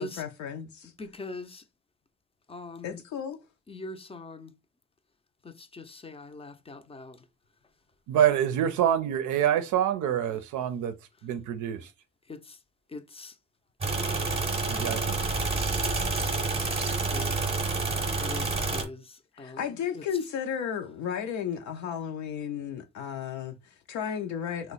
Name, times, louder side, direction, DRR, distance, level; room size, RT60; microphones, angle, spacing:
voice 1, 0.0-0.9 2.8-3.4 19.3-24.7, left 8 dB, 70° left, 0.5 m, -34 dB
voice 2, 1.0-1.6 2.5-3.0 3.7-4.5 5.4-7.2 12.3-12.6 12.9-13.4 14.8-15.2 17.0-17.4 18.2-20.0, left 2 dB, 20° left, 0.5 m, -42 dB
voice 3, 8.1-11.0 11.2-11.9 14.7-15.0, right 10 dB, 80° right, 0.5 m, -26 dB
sound 1, 13.8-18.8, right 3 dB, 20° right, 0.8 m, -28 dB
2.9 x 2.1 x 3.9 m
cardioid pair, 90°, 30 cm